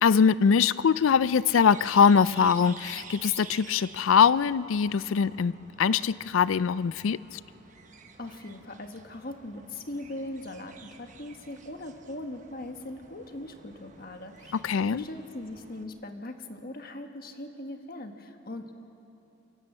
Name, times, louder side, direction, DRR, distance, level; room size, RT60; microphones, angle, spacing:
voice 1, 0.0-7.4 14.6-15.0, left 6 dB, 85° left, 18 dB, 0.4 m, -22 dB
sound 1, 1.0-15.8, right 5 dB, 40° right, 1.2 m, -51 dB
voice 2, 8.2-18.7, left 1 dB, 50° left, 5 dB, 1.5 m, -40 dB
25.0 x 17.5 x 7.6 m, 2.9 s
head